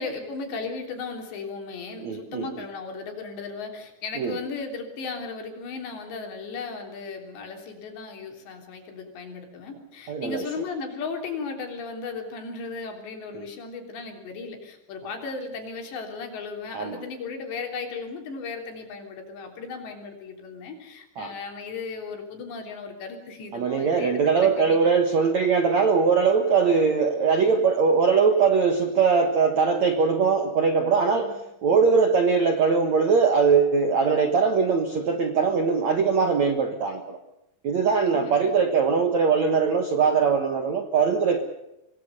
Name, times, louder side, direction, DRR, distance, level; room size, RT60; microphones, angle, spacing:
voice 1, 0.0-24.8 31.1-31.4 38.0-38.6, left 4 dB, 70° left, 3 dB, 5.7 m, -36 dB
voice 2, 2.0-2.5 4.2-4.4 10.1-10.5 13.3-13.4 16.7-17.0 21.2-21.3 23.5-31.3 31.6-37.2 37.6-41.4, right 5 dB, 60° right, 6 dB, 1.9 m, -21 dB
26.0 x 19.5 x 6.9 m, 0.86 s
omnidirectional pair, 5.3 m